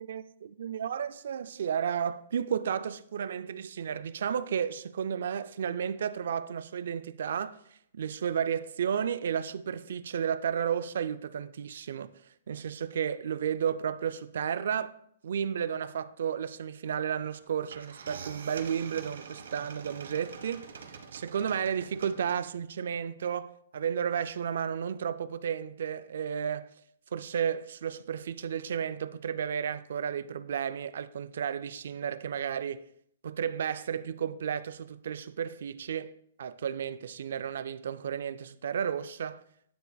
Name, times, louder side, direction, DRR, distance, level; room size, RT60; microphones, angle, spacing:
voice 1, 0.0-7.6 7.9-12.1 12.5-14.9 15.2-20.7 21.1-26.7 27.1-32.8 33.2-36.1 36.4-39.4, right 8 dB, 55° right, 0.4 m, -32 dB
sound 1, 17.3-17.4 17.7-22.7, right 6 dB, 75° right, 1.0 m, -46 dB
9.3 x 6.7 x 2.3 m
hypercardioid pair, 175°, 0 cm